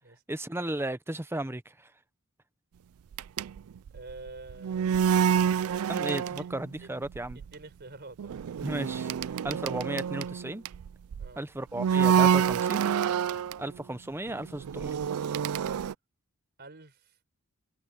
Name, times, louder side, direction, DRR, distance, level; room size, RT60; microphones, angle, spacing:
voice 1, 0.3-1.9 5.9-7.4 8.6-9.1 9.4-10.6 11.4-12.9 13.6-14.9, right 1 dB, 10° right, 0.8 m, -35 dB
sound 1, 3.1-6.8 7.0-7.4 8.2-11.3 11.8-13.6 14.3-15.9, right 8 dB, 70° right, 0.4 m, -27 dB
voice 2, 3.9-5.7 6.2-6.5 6.8-8.4 11.1-11.4 16.6-17.2, right 2 dB, 50° right, 4.3 m, -48 dB
head